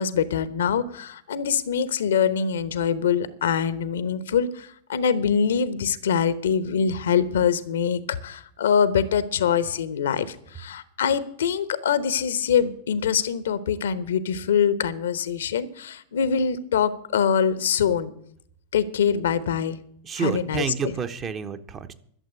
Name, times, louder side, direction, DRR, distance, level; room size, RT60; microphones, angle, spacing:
voice 1, 0.0-18.1 18.7-19.8 20.2-20.9, left 7 dB, 65° left, 15 dB, 0.9 m, -24 dB
voice 2, 20.0-21.9, right 6 dB, 25° right, 9 dB, 1.0 m, -29 dB
12.0 x 7.4 x 9.9 m, 0.66 s
figure-of-eight pair, 90°, 0 cm